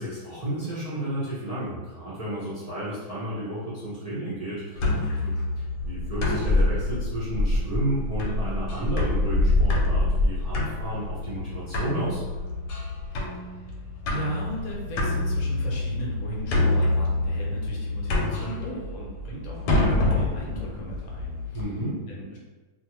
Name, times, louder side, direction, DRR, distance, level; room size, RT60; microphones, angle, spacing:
voice 1, 0.0-12.2 21.5-22.0, right 1 dB, 50° right, -11 dB, 0.4 m, -32 dB
sound 1, 4.8-21.6, left 2 dB, 85° left, 1.2 m, -26 dB
voice 2, 13.1-13.7 14.1-21.7 22.1-22.4, right 1 dB, 65° left, -3 dB, 1.0 m, -37 dB
2.6 x 2.5 x 2.9 m, 1.3 s
omnidirectional pair, 1.8 m